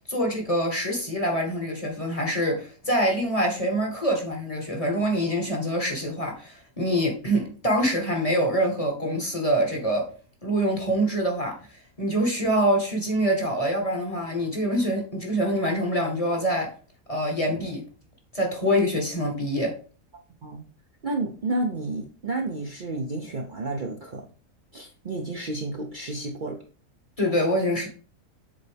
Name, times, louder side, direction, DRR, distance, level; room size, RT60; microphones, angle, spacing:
voice 1, 0.1-10.1 10.4-11.6 12.0-16.7 17.1-17.8 18.3-19.7 27.2-27.9, equal, 25° left, 1.3 m, -25 dB
voice 2, 21.0-24.3 24.7-26.6, right 2 dB, 45° right, 0.7 m, -31 dB
7.5 x 4.0 x 3.4 m
omnidirectional pair, 1.5 m